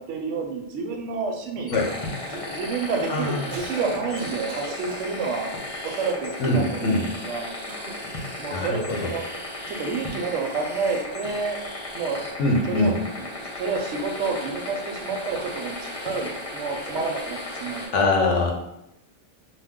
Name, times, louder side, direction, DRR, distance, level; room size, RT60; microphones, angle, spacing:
voice 1, 0.0-1.8 2.3-5.5 5.8-7.5 8.4-9.2 9.7-11.6 11.9-12.2 12.7-18.0, right 4 dB, 80° right, 3 dB, 0.9 m, -29 dB
sound 1, 1.7-17.9, left 1 dB, 35° left, 0.7 m, -35 dB
voice 2, 3.1-3.4 6.4-7.0 8.5-9.1 12.4-13.0 17.9-18.5, left 2 dB, 80° left, 0 dB, 1.0 m, -23 dB
Cough, 3.5-3.9 4.1-5.1 5.8-6.5 7.7-8.0, right 4 dB, 60° right, 0.6 m, -39 dB
2.9 x 2.1 x 3.5 m, 0.84 s
omnidirectional pair, 1.2 m